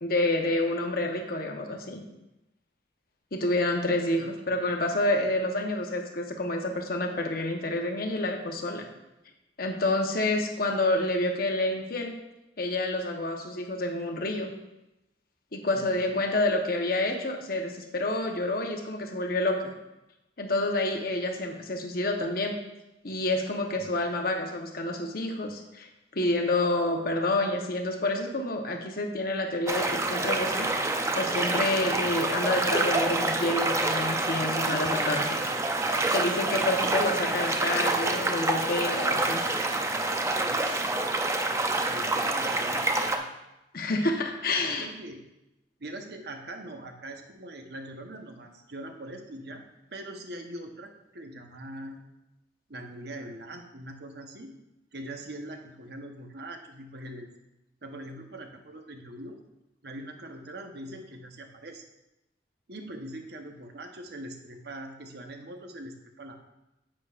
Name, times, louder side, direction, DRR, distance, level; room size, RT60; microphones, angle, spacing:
voice 1, 0.0-2.0 3.3-8.9 9.6-12.1 12.6-14.5 15.5-19.7 20.4-22.6 23.0-30.7 31.1-35.4 36.1-39.4 43.7-44.9, left 2 dB, 55° left, 3 dB, 1.0 m, -28 dB
voice 2, 4.2-4.7 15.7-16.3 39.2-39.8 40.4-40.9 41.9-43.3 44.7-45.2 45.8-49.6 49.9-52.0 52.7-54.6 54.9-57.3 57.8-59.4 59.8-61.8 62.7-66.4, right 1 dB, 65° right, 4 dB, 1.0 m, -42 dB
sound 1, 29.7-43.2, right 2 dB, 15° right, 0.5 m, -27 dB
9.9 x 8.3 x 2.5 m, 0.93 s
head